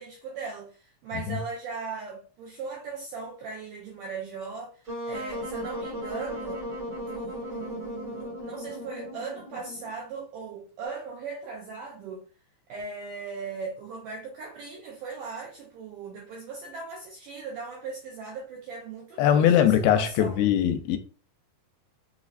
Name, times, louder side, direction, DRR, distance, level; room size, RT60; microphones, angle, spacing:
voice 1, 0.0-4.7 5.1-6.6 7.0-12.2 12.7-20.5, right 4 dB, 85° right, 1.8 m, -38 dB
Wind instrument woodwind instrument, 4.9-10.0, equal, 65° right, 0.9 m, -36 dB
voice 2, 19.2-21.0, left 10 dB, 85° left, 2.4 m, -21 dB
5.9 x 2.1 x 2.4 m
omnidirectional pair, 4.3 m